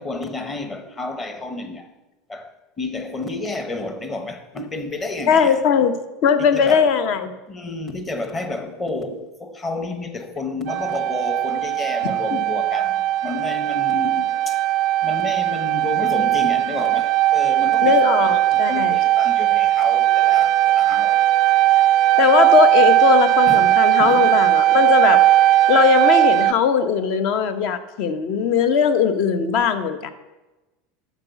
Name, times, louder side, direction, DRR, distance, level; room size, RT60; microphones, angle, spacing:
voice 1, 0.0-2.0 2.3-2.5 2.8-5.6 6.5-6.9 7.5-14.6 15.0-21.3 23.5-24.2, left 2 dB, 15° left, 1.1 m, -30 dB
voice 2, 5.3-5.9 6.2-7.3 12.3-12.4 17.8-19.0 22.2-25.2 25.7-30.1, left 7 dB, 50° left, 1.0 m, -19 dB
sound 1, 10.7-26.5, right 14 dB, 40° right, 0.4 m, -18 dB
11.5 x 7.3 x 6.9 m
supercardioid pair, 165°, 0 cm